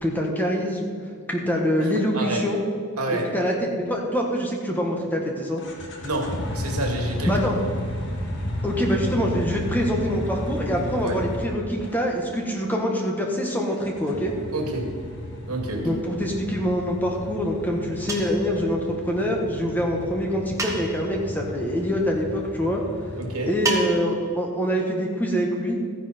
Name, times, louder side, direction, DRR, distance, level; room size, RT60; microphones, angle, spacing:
voice 1, 0.0-0.9 1.3-2.6 3.3-5.6 7.3-7.6 8.6-14.3 15.8-18.8 19.0-22.8 23.5-25.8, equal, 10° left, 0 dB, 1.4 m, -25 dB
voice 2, 2.1-2.5 3.0-3.3 6.0-7.3 11.0-11.1 14.5-14.9 15.5-15.9 23.2-23.5, right 2 dB, 85° right, 1 dB, 2.3 m, -28 dB
sound 1, 5.6-12.0 13.7-23.8, left 1 dB, 55° left, 1.8 m, -33 dB
sound 2, 18.1-18.5 20.6-21.1 23.6-24.2, right 3 dB, 15° right, 1.4 m, -29 dB
14.0 x 10.0 x 4.4 m, 2.3 s
head